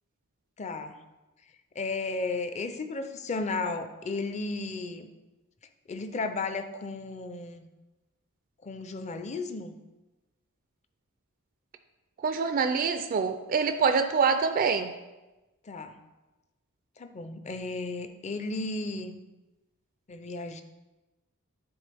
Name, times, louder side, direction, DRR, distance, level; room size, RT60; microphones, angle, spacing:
voice 1, 0.6-1.0 1.7-5.1 5.9-7.7 8.6-9.8 15.6-16.0 17.0-19.1 20.1-20.6, left 3 dB, 30° left, 9 dB, 0.5 m, -34 dB
voice 2, 12.2-14.9, right 5 dB, 40° right, 8 dB, 0.4 m, -25 dB
10.5 x 3.8 x 3.4 m, 1.1 s
head